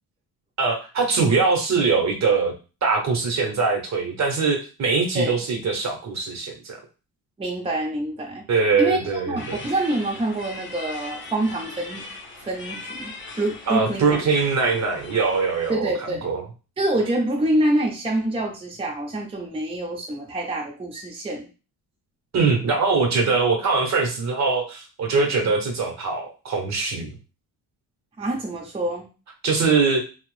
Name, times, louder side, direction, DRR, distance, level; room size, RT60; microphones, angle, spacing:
voice 1, 0.6-2.5 2.8-6.8 8.5-9.6 13.7-15.9 16.2-16.4 22.3-27.1 29.4-30.0, right 4 dB, 45° right, 2 dB, 0.8 m, -22 dB
voice 2, 7.4-8.4 8.8-9.0 9.3-12.0 12.4-14.2 15.7-16.3 16.8-21.5 28.2-29.1, right 1 dB, 15° right, -1 dB, 0.6 m, -26 dB
sound 1, 9.4-15.8, left 3 dB, 30° left, 0.7 m, -39 dB
2.9 x 2.0 x 3.1 m, 0.33 s
cardioid pair, 115°, 37 cm